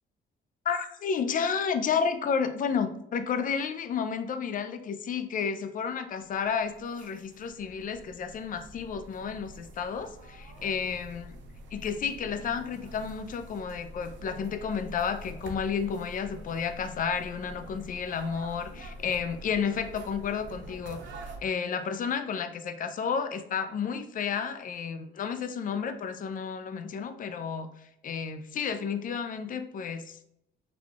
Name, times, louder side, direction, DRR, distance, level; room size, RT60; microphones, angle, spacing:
voice 1, 0.7-11.4 11.7-21.0 21.4-27.7 28.0-30.2, left 6 dB, 45° left, 9 dB, 0.4 m, -31 dB
sound 1, 6.3-21.4, right 1 dB, 70° right, 0.6 m, -46 dB
3.9 x 3.0 x 2.3 m, 0.76 s
cardioid pair, 90°, 20 cm